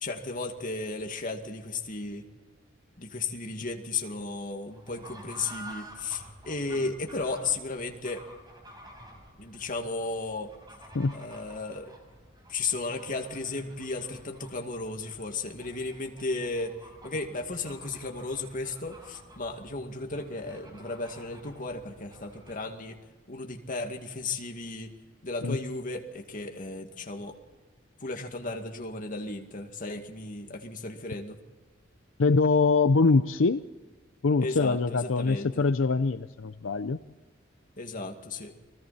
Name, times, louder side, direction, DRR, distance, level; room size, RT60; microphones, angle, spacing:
voice 1, 0.0-2.2 3.0-8.3 9.4-10.5 11.1-11.9 12.5-16.8 17.0-23.0 23.3-24.9 25.2-27.4 28.0-31.4 34.4-35.6 37.8-38.6, left 3 dB, 45° left, 3 dB, 2.2 m, -35 dB
Fowl / Bird, 4.7-22.7, right 1 dB, 20° right, 5.0 m, -51 dB
voice 2, 32.2-33.6 34.2-37.0, left 4 dB, 85° left, 12 dB, 0.6 m, -24 dB
29.5 x 21.0 x 4.3 m, 1.3 s
head